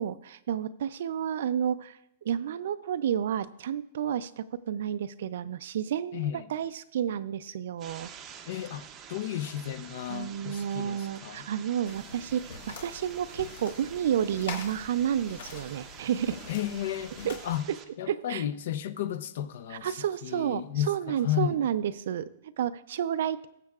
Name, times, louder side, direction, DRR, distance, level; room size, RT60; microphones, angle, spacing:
voice 1, 0.0-8.1 10.1-16.4 17.2-17.4 17.7-17.8 18.1-18.4 19.7-23.5, right 9 dB, 60° right, 0.4 m, -31 dB
voice 2, 6.1-6.5 8.5-11.5 16.5-17.7 18.0-19.9 20.2-21.6, left 11 dB, 55° left, 0.6 m, -33 dB
sound 1, 7.8-17.8, right 8 dB, 20° right, 0.6 m, -48 dB
sound 2, 11.8-17.6, left 5 dB, 70° left, 2.0 m, -44 dB
20.5 x 7.4 x 2.4 m
supercardioid pair, 175°, 0 cm